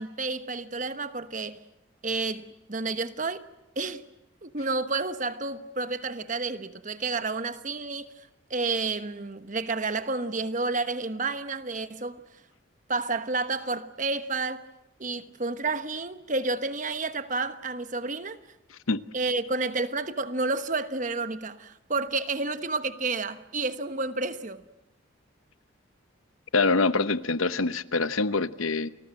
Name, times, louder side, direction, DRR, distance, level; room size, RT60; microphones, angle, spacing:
voice 1, 0.0-1.6 2.0-3.4 3.8-4.0 4.4-8.1 8.5-12.2 12.9-14.7 15.0-18.4 19.1-24.6, right 3 dB, 40° right, 1.1 m, -30 dB
voice 2, 26.5-28.9, left 3 dB, 85° left, 0.9 m, -25 dB
30.0 x 20.0 x 7.7 m
head